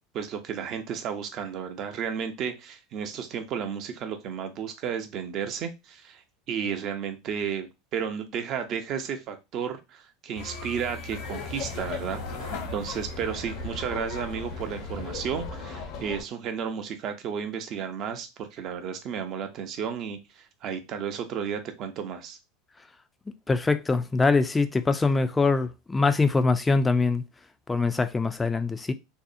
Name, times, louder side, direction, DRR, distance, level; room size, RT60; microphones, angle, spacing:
voice 1, 0.1-22.4, right 7 dB, 50° right, 0.6 m, -33 dB
sound 1, 10.3-15.5, left 2 dB, 80° left, 1.1 m, -39 dB
Laughter, 11.1-16.2, left 5 dB, 55° left, 0.6 m, -38 dB
voice 2, 23.5-27.2 27.7-28.9, left 3 dB, 15° left, 0.4 m, -23 dB
2.7 x 2.0 x 2.5 m
hypercardioid pair, 90°, 0 cm